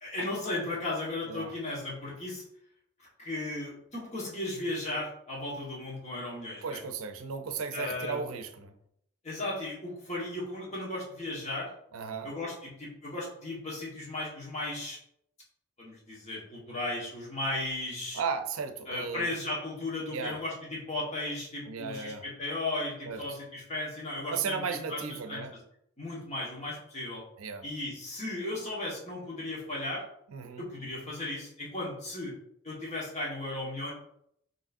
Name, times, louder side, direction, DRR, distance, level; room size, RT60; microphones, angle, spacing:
voice 1, 0.0-2.4 3.0-6.8 7.7-8.2 9.2-11.7 12.2-15.0 15.8-18.2 18.9-24.6 24.9-25.4 26.0-27.2 27.6-30.0 30.6-32.3 32.6-33.9, left 2 dB, 35° left, -4 dB, 1.3 m, -36 dB
voice 2, 6.6-8.7 11.9-12.3 18.1-19.3 20.1-20.4 21.7-22.2 23.1-23.2 24.3-25.5 27.4-27.6 30.3-30.7, right 5 dB, 90° right, 7 dB, 0.5 m, -35 dB
5.0 x 3.0 x 2.5 m, 0.72 s
head